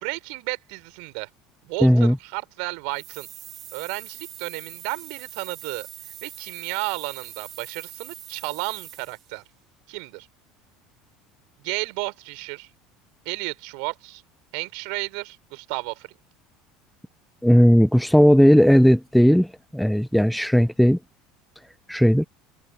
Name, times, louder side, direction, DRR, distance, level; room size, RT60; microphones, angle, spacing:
voice 1, 0.0-1.3 1.6-3.3 3.7-5.9 6.2-9.4 9.9-10.3 11.6-12.7 13.3-14.2 14.5-16.1, right 37 dB, 60° right, 3.9 m, -32 dB
voice 2, 1.8-2.1 17.4-19.5 19.7-21.0 21.9-22.3, equal, ahead, 0.6 m, -16 dB
sound 1, 2.9-9.3, right 12 dB, 45° right, 3.1 m, -42 dB
figure-of-eight pair, 70°, 0 cm